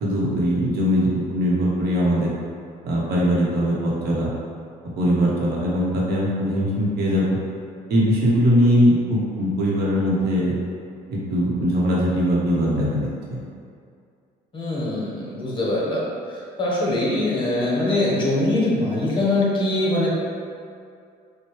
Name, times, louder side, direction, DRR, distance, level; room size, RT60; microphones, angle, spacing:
voice 1, 0.0-2.3 2.8-4.3 5.0-7.4 7.9-10.5 11.1-13.4, equal, 70° right, -5 dB, 0.9 m, -21 dB
voice 2, 14.5-16.0 16.6-20.1, left 2 dB, 30° left, -5 dB, 1.0 m, -22 dB
4.4 x 2.2 x 3.1 m, 2.3 s
cardioid pair, 110°, 17 cm